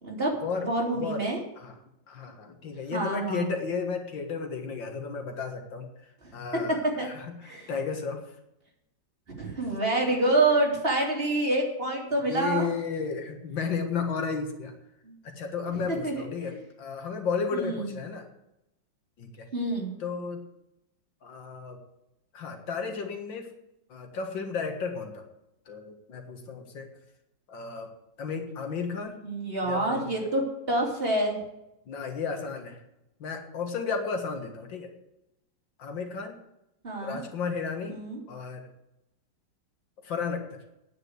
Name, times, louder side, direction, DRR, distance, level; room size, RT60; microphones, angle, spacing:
voice 1, 0.0-1.4 2.9-3.5 6.2-7.1 7.4-7.7 9.4-12.7 15.0-15.1 15.9-16.5 17.5-17.9 19.5-19.9 29.2-31.4 36.8-37.2 37.9-38.2, right 2 dB, 30° right, -2 dB, 3.2 m, -27 dB
voice 2, 1.0-1.3 1.6-1.8 2.1-5.9 6.3-8.2 12.3-14.7 15.2-18.3 19.2-19.5 20.0-20.4 21.2-21.8 22.3-23.5 23.9-25.2 25.7-26.9 27.5-27.9 28.2-29.2 29.6-30.1 31.9-32.8 33.2-34.9 35.8-36.3 37.0-38.0 38.3-38.7 40.0-40.4, left 5 dB, 85° left, 5 dB, 2.3 m, -33 dB
9.4 x 8.9 x 8.0 m, 0.87 s
omnidirectional pair, 2.0 m